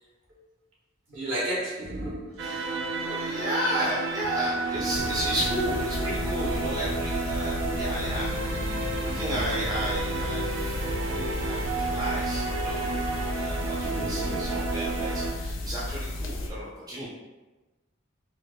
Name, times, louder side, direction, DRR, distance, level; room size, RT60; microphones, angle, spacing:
voice 1, 1.1-2.6 4.7-5.2 9.1-9.4 13.8-14.4, right 1 dB, 65° right, -6 dB, 1.3 m, -34 dB
voice 2, 2.4-8.3 9.0-13.0 13.3-17.1, equal, 20° right, -7 dB, 0.5 m, -33 dB
sound 1, 2.4-15.3, right 3 dB, 85° right, 0.4 m, -31 dB
sound 2, 4.9-16.5, left 2 dB, 70° left, 0.5 m, -33 dB
4.5 x 2.4 x 2.2 m, 1.1 s
head